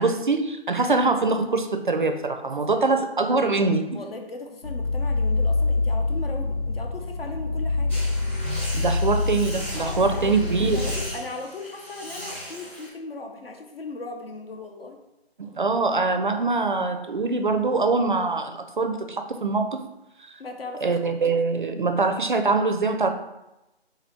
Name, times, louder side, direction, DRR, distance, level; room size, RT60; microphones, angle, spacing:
voice 1, 0.0-4.0 8.4-11.0 15.4-19.8 20.8-23.1, right 3 dB, 50° right, 7 dB, 0.4 m, -23 dB
voice 2, 2.6-3.0 3.9-8.1 9.8-15.0 20.4-21.1, left 3 dB, 65° left, 3 dB, 0.8 m, -38 dB
sound 1, 4.6-11.0, left 3 dB, 80° left, 1.1 m, -26 dB
sound 2, 7.9-12.9, equal, 10° left, 0.6 m, -38 dB
3.9 x 2.8 x 4.3 m, 0.93 s
figure-of-eight pair, 155°, 32 cm